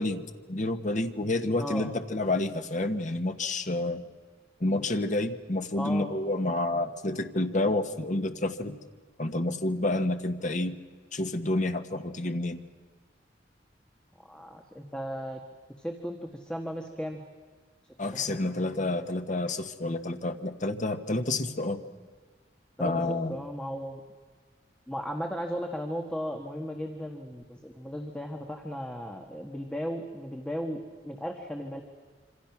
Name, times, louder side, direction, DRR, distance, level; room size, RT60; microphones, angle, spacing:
voice 1, 0.0-4.0 4.6-8.8 9.2-10.8 11.1-12.6 18.0-21.8 22.8-23.4, left 2 dB, 45° left, 7 dB, 1.5 m, -29 dB
voice 2, 1.6-1.9 5.8-6.1 14.2-15.4 15.8-17.2 18.1-18.4 22.8-24.0 24.9-31.8, equal, 5° left, 3 dB, 1.6 m, -36 dB
26.5 x 26.0 x 6.0 m, 1.5 s
head